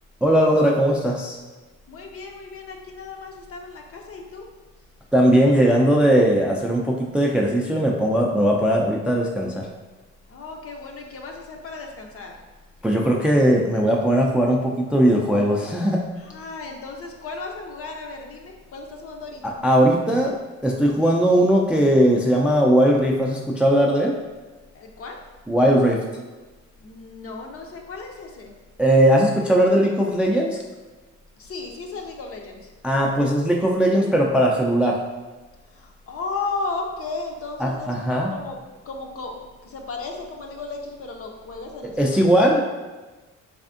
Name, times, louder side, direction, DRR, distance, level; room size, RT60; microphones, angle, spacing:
voice 1, 0.2-1.4 5.1-9.7 12.8-16.0 19.4-20.4 20.6-24.1 25.5-26.0 28.8-30.6 32.8-35.0 37.6-38.3 42.0-42.6, equal, 5° right, 0 dB, 0.3 m, -19 dB
voice 2, 1.9-4.5 10.3-12.3 16.2-19.6 24.7-25.2 26.8-28.5 31.4-32.7 35.7-38.6 38.8-42.2, left 3 dB, 50° left, 2 dB, 0.6 m, -35 dB
3.5 x 3.3 x 2.5 m, 1.2 s
cardioid pair, 90°, 30 cm